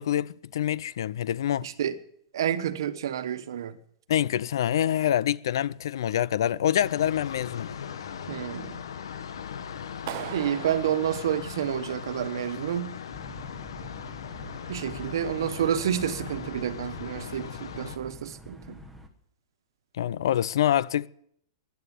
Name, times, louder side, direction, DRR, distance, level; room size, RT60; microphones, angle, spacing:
voice 1, 0.0-1.7 4.1-7.7 20.0-21.1, left 11 dB, 65° left, 0.5 m, -26 dB
voice 2, 1.6-1.9 2.3-3.8 8.3-8.8 10.3-12.9 14.7-18.8, right 9 dB, 70° right, 1.3 m, -29 dB
sound 1, 6.8-18.0, left 7 dB, 90° left, 1.4 m, -39 dB
Clapping, 10.1-12.1, right 14 dB, 40° right, 0.7 m, -40 dB
sound 2, 13.1-19.1, equal, ahead, 1.2 m, -46 dB
15.0 x 10.5 x 8.3 m
supercardioid pair, 170°, 2 cm